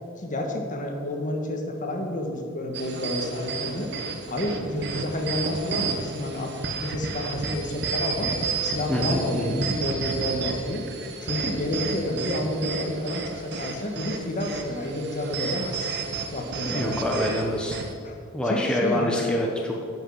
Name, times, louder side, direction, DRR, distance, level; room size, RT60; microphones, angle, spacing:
voice 1, 0.2-3.9 4.3-8.3 8.6-10.9 11.2-15.9 16.3-17.0 18.0-18.2 18.4-19.2, left 1 dB, 40° left, 2 dB, 1.6 m, -30 dB
sound 1, 2.7-17.9, right 4 dB, 55° right, 1.2 m, -32 dB
voice 2, 8.9-9.6 16.6-17.8 18.3-19.8, left 1 dB, 5° left, -2 dB, 1.0 m, -26 dB
10.5 x 6.5 x 7.2 m, 2.6 s
head